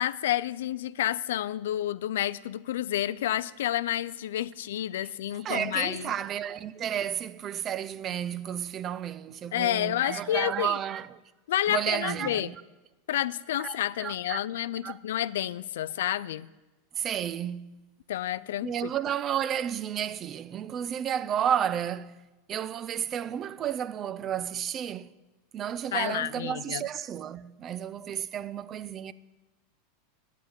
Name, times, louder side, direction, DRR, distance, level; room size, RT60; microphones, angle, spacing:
voice 1, 0.0-6.1 9.5-10.8 11.5-12.5 13.1-16.5 18.1-18.9 25.9-26.8, left 12 dB, 80° left, 0.3 m, -30 dB
voice 2, 5.4-11.2 11.7-12.6 13.6-14.4 14.8-15.0 17.0-17.8 18.6-22.2 22.5-25.1 25.5-29.1, right 9 dB, 30° right, 0.4 m, -32 dB
9.1 x 7.4 x 6.9 m
supercardioid pair, 125°, 0 cm